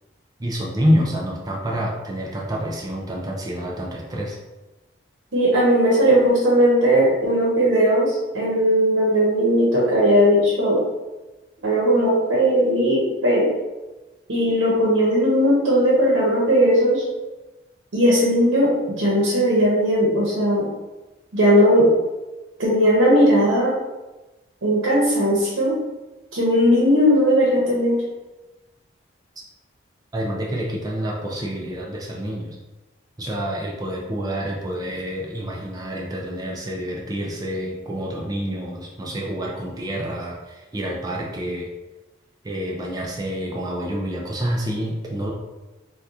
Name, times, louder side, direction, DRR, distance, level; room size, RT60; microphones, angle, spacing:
voice 1, 0.4-4.4 30.1-32.6 33.2-41.7 42.4-45.3, equal, 20° right, -2 dB, 0.4 m, -27 dB
voice 2, 5.3-10.8 11.6-13.5 14.3-17.0 17.9-20.7 21.3-21.9 22.6-23.7 24.6-25.7 26.3-28.0, equal, 80° right, -5 dB, 0.8 m, -18 dB
2.8 x 2.3 x 3.5 m, 1.1 s
head